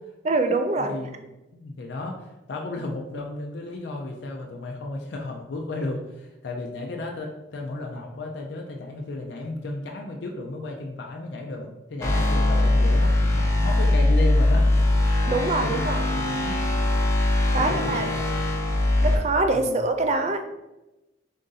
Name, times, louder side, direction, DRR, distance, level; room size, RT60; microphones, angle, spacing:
voice 1, 0.2-0.9 15.3-16.1 17.5-18.0 19.0-20.5, right 2 dB, 35° right, 7 dB, 0.3 m, -24 dB
voice 2, 0.8-14.7 15.6-16.6 17.5-18.5 19.5-19.9, left 2 dB, 70° left, 1 dB, 0.5 m, -34 dB
sound 1, 12.0-19.2, left 1 dB, 15° left, 0.5 m, -21 dB
3.7 x 2.6 x 3.8 m, 0.99 s
head